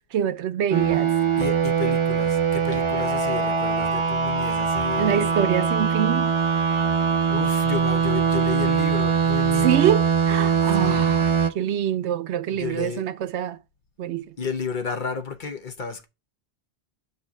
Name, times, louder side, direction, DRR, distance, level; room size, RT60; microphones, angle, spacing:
voice 1, 0.0-1.2 5.0-6.3 9.6-13.6 14.0-14.4, right 10 dB, 75° right, 0.9 m, -25 dB
sound 1, 0.7-11.5, right 6 dB, 40° right, 0.4 m, -22 dB
voice 2, 1.4-5.4 7.3-9.9 10.7-11.1 12.5-13.1 14.4-16.1, left 6 dB, 50° left, 1.0 m, -31 dB
5.8 x 4.2 x 6.0 m
omnidirectional pair, 1.2 m